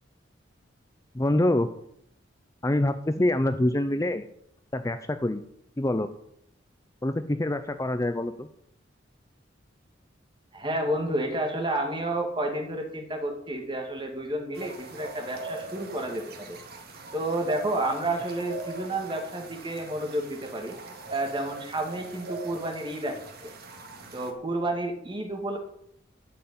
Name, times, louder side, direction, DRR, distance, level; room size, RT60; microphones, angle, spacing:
voice 1, 1.1-1.7 2.6-4.3 4.7-5.4 5.8-6.1 7.0-8.5, left 1 dB, 15° left, 9 dB, 0.5 m, -25 dB
voice 2, 10.5-16.6 17.1-20.8 21.1-23.5 24.1-25.6, right 1 dB, 25° right, 3 dB, 2.3 m, -30 dB
sound 1, 14.5-24.3, right 3 dB, 55° right, 2.0 m, -42 dB
13.0 x 5.8 x 8.6 m, 0.74 s
head